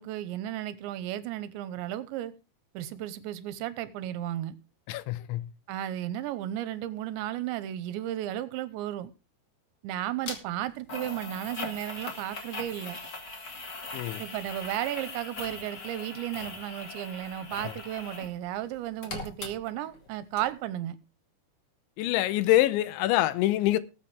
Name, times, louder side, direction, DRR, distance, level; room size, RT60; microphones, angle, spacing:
voice 1, 0.0-2.3 2.7-4.6 5.7-9.1 9.8-13.0 14.2-21.0, right 12 dB, 85° right, 3.2 m, -34 dB
voice 2, 4.9-5.5 13.9-14.2 17.6-17.7 22.0-23.8, left 15 dB, 85° left, 3.2 m, -25 dB
sound 1, 10.2-10.4 10.9-18.3 18.6-20.1 20.4-20.5, left 3 dB, 35° left, 2.0 m, -40 dB
19.5 x 8.4 x 3.4 m
omnidirectional pair, 5.2 m